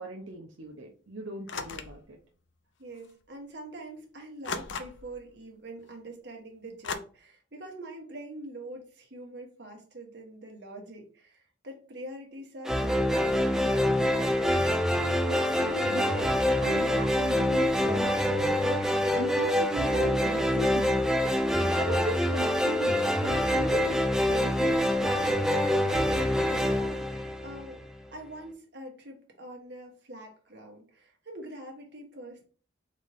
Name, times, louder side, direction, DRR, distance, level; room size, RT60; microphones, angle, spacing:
voice 1, 0.0-2.2 15.3-20.9 21.4-25.6, right 2 dB, 80° right, 1 dB, 0.7 m, -38 dB
sound 1, 1.5-2.0 3.0-3.1 4.4-5.2 6.8-7.0, left 5 dB, 70° left, 0.5 m, -36 dB
voice 2, 2.8-14.5 19.2-19.3 26.0-27.8 28.1-32.5, right 1 dB, 55° right, 1 dB, 1.3 m, -44 dB
sound 2, 12.7-27.9, left 1 dB, 5° right, 0.4 m, -26 dB
4.0 x 3.7 x 3.4 m, 0.40 s
head